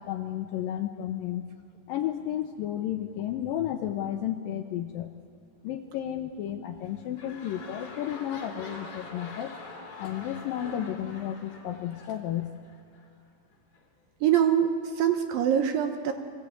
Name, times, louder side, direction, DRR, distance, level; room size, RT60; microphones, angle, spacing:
voice 1, 0.0-1.4 1.9-5.1 5.6-9.5 10.0-12.5, left 11 dB, 80° left, 5 dB, 2.1 m, -32 dB
sound 1, 6.7-13.1 13.8-13.9, left 3 dB, 45° left, 3.5 m, -45 dB
voice 2, 14.2-16.1, right 9 dB, 75° right, 6 dB, 2.3 m, -24 dB
24.0 x 16.5 x 8.4 m, 2.2 s
omnidirectional pair, 4.8 m